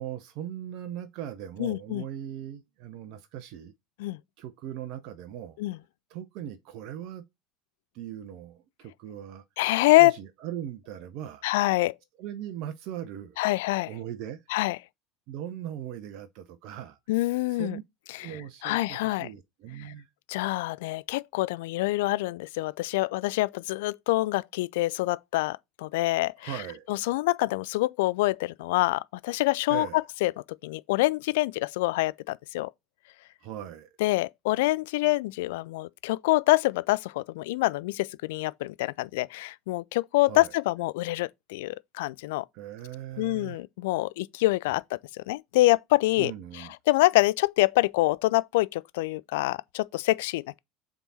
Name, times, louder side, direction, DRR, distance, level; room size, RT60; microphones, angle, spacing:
voice 1, 0.0-3.7 4.4-5.6 6.1-7.2 7.9-9.4 10.0-11.5 12.2-13.4 13.9-14.4 15.3-17.0 17.5-17.8 18.2-20.1 26.4-26.9 29.7-30.0 33.4-33.9 40.3-40.5 42.5-43.6 46.2-46.7, right 11 dB, 55° right, 0.7 m, -39 dB
voice 2, 1.6-2.0 4.0-4.2 5.6-5.8 9.6-10.1 11.4-11.9 13.4-13.9 14.5-14.8 17.1-17.8 18.1-18.3 18.6-19.3 20.3-26.5 26.9-29.9 30.2-30.3 30.6-32.7 34.0-42.5 43.2-44.8 45.1-46.3 46.9-50.6, left 19 dB, 65° left, 0.3 m, -26 dB
7.0 x 3.6 x 4.1 m
figure-of-eight pair, 70°, 0 cm